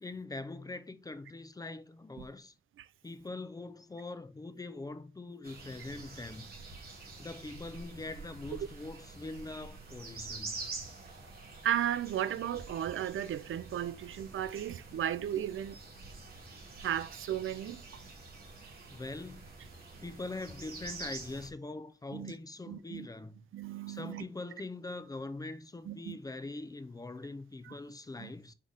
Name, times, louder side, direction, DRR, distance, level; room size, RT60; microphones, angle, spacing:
voice 1, 0.0-2.5 3.0-6.5 7.2-10.8 18.9-19.4 20.0-23.5 23.9-28.5, left 2 dB, 15° left, 0.4 m, -43 dB
sound 1, 5.4-21.5, right 3 dB, 45° right, 2.3 m, -47 dB
voice 2, 11.6-15.8 16.8-17.8 22.1-22.3 22.7-23.1 23.5-24.2 25.9-26.2 28.2-28.3, right 11 dB, 70° right, 0.4 m, -34 dB
8.1 x 3.7 x 3.4 m
wide cardioid pair, 175°, 21 cm